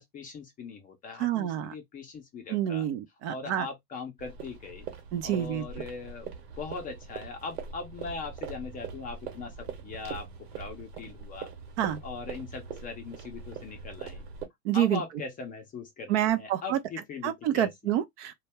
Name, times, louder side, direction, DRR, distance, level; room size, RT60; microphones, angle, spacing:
voice 1, 0.0-2.9 3.3-4.9 5.2-11.5 12.0-14.3 14.7-17.7, left 4 dB, 20° left, 0.5 m, -40 dB
voice 2, 1.2-1.7 2.5-3.7 5.1-5.6 11.8-12.0 14.6-15.0 16.1-16.8 17.2-18.4, right 11 dB, 50° right, 0.5 m, -28 dB
sound 1, 4.2-14.5, right 6 dB, 70° right, 1.1 m, -42 dB
2.2 x 2.1 x 3.3 m
hypercardioid pair, 110°, 47 cm